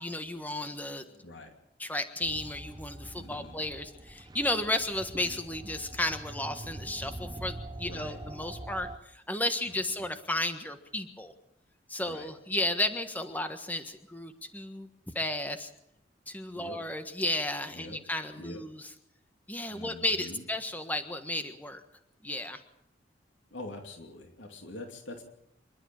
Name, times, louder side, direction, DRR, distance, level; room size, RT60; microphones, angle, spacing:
voice 1, 0.0-1.0 1.8-11.3 11.9-14.9 15.1-15.7 16.3-18.9 19.5-21.8 22.2-22.6, left 1 dB, 10° left, 8 dB, 1.5 m, -33 dB
sound 1, 2.2-9.0, right 1 dB, 20° right, 0.8 m, -44 dB
voice 2, 3.2-3.6 7.8-8.2 9.7-9.8 12.0-12.3 16.5-16.8 17.7-18.0 18.4-18.6 19.7-20.4 23.5-25.2, left 2 dB, 75° left, 4 dB, 2.8 m, -44 dB
27.0 x 12.5 x 8.9 m, 0.79 s
head